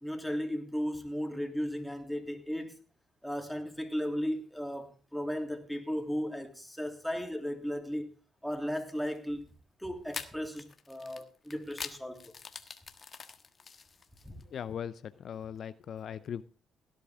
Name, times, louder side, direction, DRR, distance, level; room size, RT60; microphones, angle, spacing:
voice 1, 0.0-2.7 3.2-8.1 8.4-9.4 9.8-12.3 14.2-14.3, equal, ahead, 3.0 m, -35 dB
sound 1, 9.0-9.2 10.1-14.4, left 5 dB, 40° left, 1.4 m, -44 dB
voice 2, 14.5-16.4, left 8 dB, 60° left, 0.6 m, -39 dB
17.5 x 10.5 x 3.7 m
cardioid pair, 90°, 0 cm